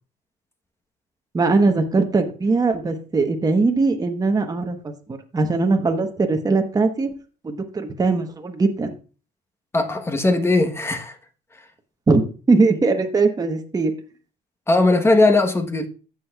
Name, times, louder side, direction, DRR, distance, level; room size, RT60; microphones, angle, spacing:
voice 1, 1.3-4.9 5.3-7.1 7.4-8.9 12.1-12.2 12.5-13.9, right 3 dB, 20° right, 1.1 m, -20 dB
voice 2, 9.7-11.2 14.7-15.9, left 2 dB, 15° left, 1.1 m, -18 dB
15.5 x 6.3 x 2.4 m
cardioid pair, 110°, 17 cm